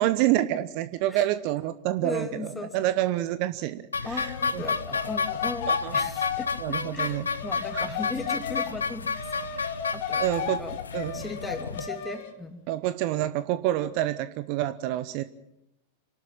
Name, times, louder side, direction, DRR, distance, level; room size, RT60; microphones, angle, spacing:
voice 1, 0.0-4.6 5.7-6.0 6.6-7.3 7.5-7.9 10.2-10.6 10.9-11.2 12.7-15.2, right 14 dB, 45° right, 13 dB, 0.9 m, -28 dB
voice 2, 2.0-2.9 4.0-10.7 11.1-12.6, left 3 dB, 10° left, 6 dB, 2.8 m, -38 dB
sound 1, 3.9-11.9, left 5 dB, 75° left, 0.7 m, -31 dB
sound 2, 4.2-8.7 9.1-12.3, left 7 dB, 50° left, 2.5 m, -35 dB
26.5 x 12.5 x 8.9 m, 0.84 s
figure-of-eight pair, 90°, 0 cm